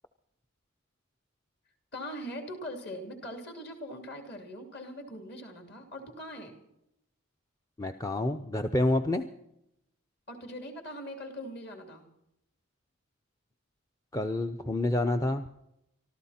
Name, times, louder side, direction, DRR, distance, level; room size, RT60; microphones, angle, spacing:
voice 1, 1.9-6.6 10.3-12.1, equal, 50° left, 4 dB, 3.0 m, -41 dB
voice 2, 7.8-9.2 14.1-15.5, left 1 dB, 15° left, 6 dB, 0.6 m, -28 dB
24.5 x 14.0 x 4.3 m, 0.82 s
head